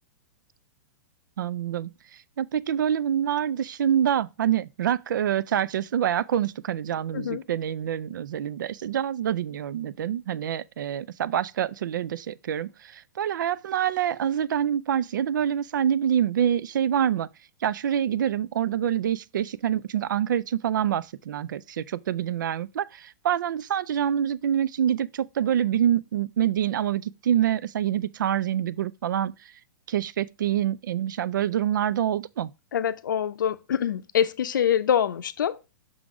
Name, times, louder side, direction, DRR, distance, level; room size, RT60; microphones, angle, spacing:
voice 1, 1.4-1.9 2.4-17.3 17.6-29.5 29.9-32.5, right 10 dB, 80° right, 0.4 m, -26 dB
voice 2, 32.7-35.6, left 9 dB, 90° left, 0.6 m, -25 dB
6.2 x 3.8 x 4.7 m
hypercardioid pair, 170°, 10 cm